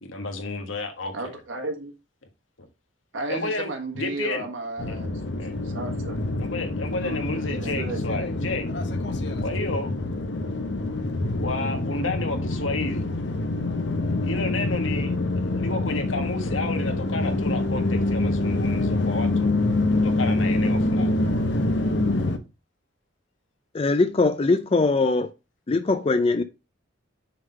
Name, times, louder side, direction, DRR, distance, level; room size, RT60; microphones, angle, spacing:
voice 1, 0.0-1.3 2.6-2.7 3.3-4.5 4.9-5.0 5.4-5.5 6.4-8.7 9.4-9.9 11.4-13.1 14.2-15.1 15.5-21.1, left 2 dB, 80° left, 1.6 m, -31 dB
voice 2, 1.1-1.9 3.1-5.2 5.6-6.2 7.0-7.2 7.5-8.0, right 2 dB, 75° right, 1.5 m, -33 dB
sound 1, 4.8-22.4, left 2 dB, 60° left, 0.9 m, -26 dB
voice 3, 23.7-25.3 25.7-26.4, left 3 dB, 30° left, 0.4 m, -21 dB
6.5 x 3.7 x 5.5 m
head